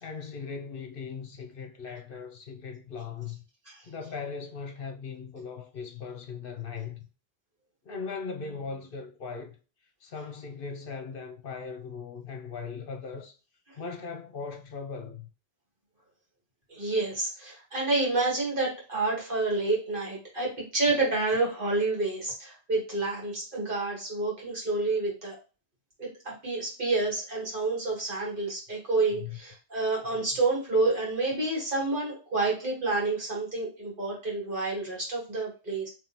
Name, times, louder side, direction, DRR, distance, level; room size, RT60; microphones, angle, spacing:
voice 1, 0.0-3.4 3.8-7.1 7.8-9.6 10.0-13.4 13.8-15.3 29.1-29.4 30.1-30.4, left 5 dB, 60° left, 0.8 m, -39 dB
voice 2, 16.7-25.4 26.0-35.9, right 3 dB, 55° right, 1.8 m, -29 dB
3.5 x 3.1 x 2.9 m
omnidirectional pair, 1.1 m